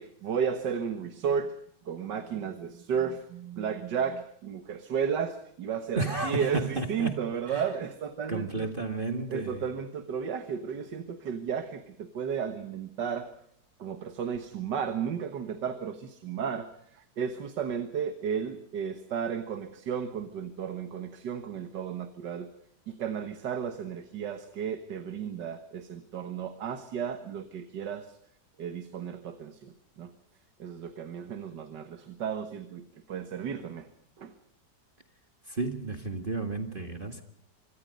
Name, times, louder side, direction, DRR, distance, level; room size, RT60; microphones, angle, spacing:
voice 1, 0.0-1.5 1.9-8.7 9.3-13.3 13.8-22.5 22.9-28.2 28.6-30.1 30.6-33.9 34.2-34.3, right 7 dB, 80° right, 9 dB, 2.0 m, -33 dB
voice 2, 6.0-7.7 8.3-9.6 35.5-37.2, right 3 dB, 30° right, 7 dB, 1.9 m, -32 dB
25.0 x 24.5 x 5.3 m, 0.70 s
omnidirectional pair, 1.8 m